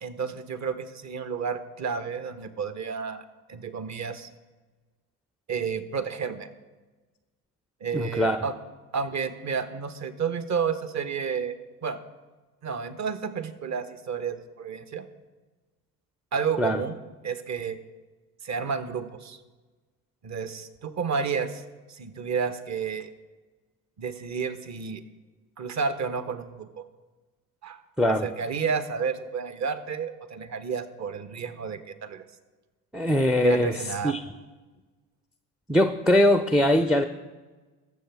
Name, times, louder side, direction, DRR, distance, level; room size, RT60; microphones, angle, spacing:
voice 1, 0.0-4.3 5.5-6.5 7.8-8.5 8.9-11.5 11.8-12.0 12.6-15.0 16.3-16.9 17.2-17.8 18.4-19.4 20.2-21.6 21.9-23.1 24.0-25.0 25.6-26.7 27.6-27.8 28.2-32.2 33.4-34.1, right 6 dB, 35° right, 10 dB, 1.2 m, -31 dB
voice 2, 7.9-8.4 16.6-16.8 28.0-28.3 32.9-34.2 35.7-37.0, left 1 dB, ahead, 9 dB, 0.5 m, -22 dB
21.0 x 7.2 x 3.5 m, 1.3 s
hypercardioid pair, 60°, 47 cm